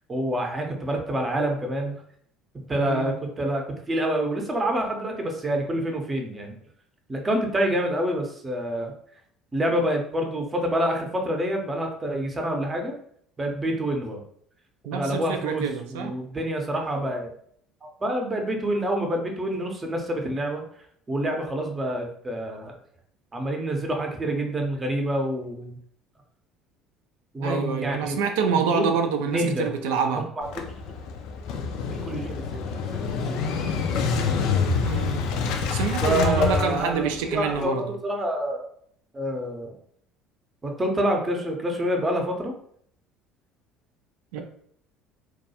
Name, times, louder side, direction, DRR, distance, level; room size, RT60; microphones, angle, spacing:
voice 1, 0.1-1.9 2.7-6.5 7.1-8.9 9.5-12.9 13.4-14.2 14.9-17.3 17.8-20.6 21.1-22.7 23.3-25.8 27.3-28.2 28.7-28.9 29.3-29.7 30.4-30.5 32.0-33.4 36.0-38.6 39.1-39.7 40.6-42.5, right 1 dB, 25° right, 2 dB, 0.6 m, -27 dB
voice 2, 2.8-3.2 14.8-16.1 27.4-30.3 34.8-35.3 35.6-37.8 44.3-44.4, right 6 dB, 75° right, 5 dB, 0.3 m, -27 dB
Motorcycle / Engine starting, 30.4-37.6, left 5 dB, 65° left, 0.3 m, -27 dB
2.3 x 2.2 x 2.7 m, 0.64 s
hypercardioid pair, 65°, 0 cm